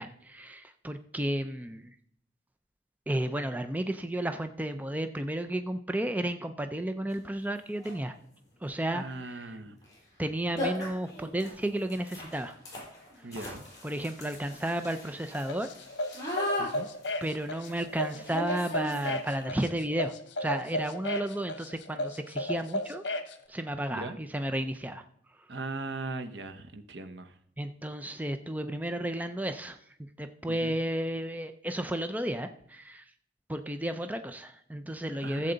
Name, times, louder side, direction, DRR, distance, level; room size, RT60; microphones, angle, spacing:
voice 1, 0.0-1.9 3.1-8.1 8.6-9.4 10.2-12.6 13.8-15.7 17.2-20.1 20.4-23.0 23.5-25.0 27.6-29.8 30.2-33.0 33.5-35.5, right 1 dB, 10° right, 8 dB, 0.5 m, -33 dB
sound 1, 7.1-7.2 7.7-8.1 9.8-10.0 10.2-10.3 10.6-19.4, left 1 dB, 20° left, 5.4 m, -38 dB
voice 2, 8.9-9.8 13.2-13.6 16.6-16.9 23.9-24.2 25.5-27.4 30.5-30.8 35.2-35.5, right 3 dB, 70° right, 10 dB, 0.9 m, -39 dB
sound 2, 15.5-23.3, left 1 dB, 75° left, 1.0 m, -34 dB
14.5 x 7.7 x 3.9 m, 0.68 s
head